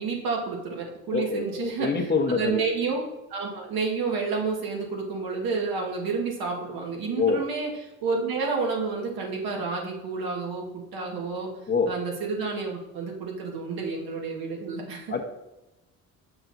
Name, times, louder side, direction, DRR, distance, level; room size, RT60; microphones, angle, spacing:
voice 1, 0.0-3.0 3.3-11.5 11.9-15.1, right 4 dB, 75° right, 0 dB, 1.7 m, -30 dB
voice 2, 1.1-2.6 7.2-7.4 11.7-11.9 15.1-15.2, left 4 dB, 30° left, 3 dB, 1.0 m, -25 dB
6.8 x 5.9 x 2.7 m, 0.97 s
supercardioid pair, 75°, 36 cm